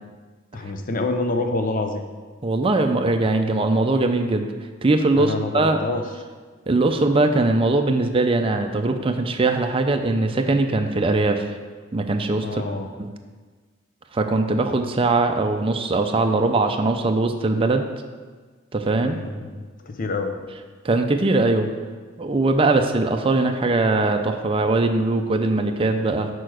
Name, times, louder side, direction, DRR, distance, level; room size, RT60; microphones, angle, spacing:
voice 1, 0.5-2.0 5.1-6.1 12.4-12.9 19.0-20.3, left 2 dB, 40° left, 5 dB, 0.7 m, -27 dB
voice 2, 2.4-4.5 4.8-5.8 6.7-11.4 11.9-12.6 13.0-13.1 14.1-17.9 18.7-19.2 20.8-21.7 22.2-26.3, right 2 dB, 25° right, 5 dB, 0.5 m, -21 dB
6.7 x 4.5 x 6.2 m, 1.4 s
head